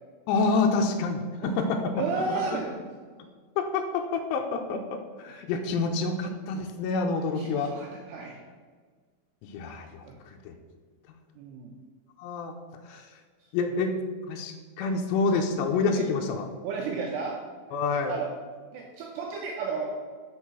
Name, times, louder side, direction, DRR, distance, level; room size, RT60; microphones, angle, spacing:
voice 1, 0.3-2.0 2.3-2.6 3.6-7.7 9.4-10.5 12.2-12.6 12.9-13.1 13.5-14.0 14.3-16.5 17.7-18.2, left 4 dB, 90° left, 4 dB, 2.4 m, -28 dB
voice 2, 1.9-2.8 7.4-8.4 10.0-10.2 11.4-11.7 15.9-16.1 16.6-17.4 18.1-18.3 18.7-19.9, right 4 dB, 85° right, 0 dB, 2.5 m, -33 dB
6.3 x 5.4 x 5.9 m, 1.5 s
omnidirectional pair, 5.5 m